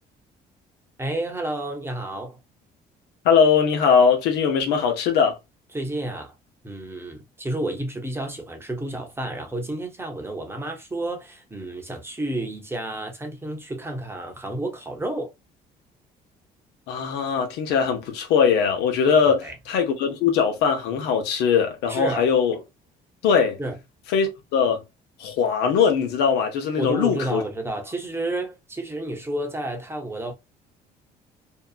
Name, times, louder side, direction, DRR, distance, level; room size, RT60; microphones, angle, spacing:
voice 1, 1.0-2.4 5.7-6.3 6.6-15.3 19.4-19.5 21.9-22.2 23.6-23.8 26.8-30.3, right 1 dB, 15° right, 0.8 m, -30 dB
voice 2, 3.2-5.4 16.9-22.6 23.2-23.6 24.1-24.8 25.2-27.4, left 6 dB, 85° left, 0.8 m, -21 dB
2.7 x 2.3 x 2.3 m
cardioid pair, 110°, 17 cm